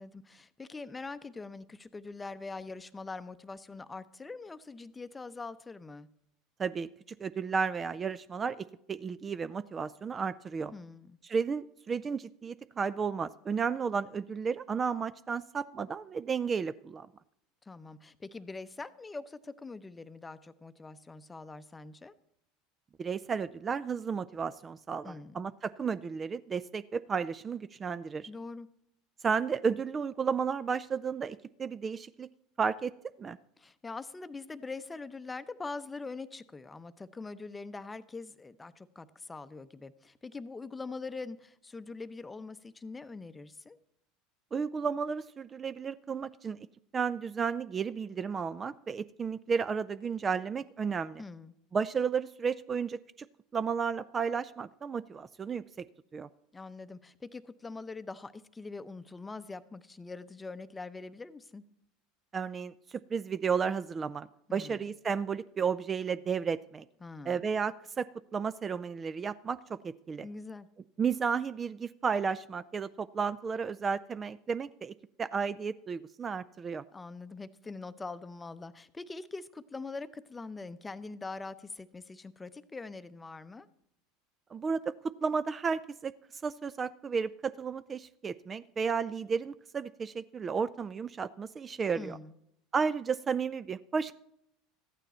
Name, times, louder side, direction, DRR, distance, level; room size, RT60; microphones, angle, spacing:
voice 1, 0.0-6.1 10.7-11.2 17.6-22.1 25.0-25.5 28.3-28.7 33.6-43.8 51.2-51.5 56.5-61.6 64.5-64.8 67.0-67.5 70.2-70.7 76.9-83.7 91.9-92.4, left 3 dB, 15° left, 0.7 m, -43 dB
voice 2, 6.6-10.7 11.2-17.1 23.0-28.3 29.2-32.3 32.6-32.9 33.2-33.4 44.5-46.6 46.9-51.2 51.7-53.0 53.5-55.6 56.1-56.3 62.3-66.8 67.3-70.3 71.0-76.8 84.5-86.1 86.4-92.2 92.7-94.2, right 6 dB, 30° right, 0.4 m, -33 dB
13.5 x 9.1 x 4.3 m
hypercardioid pair, 80°, 0 cm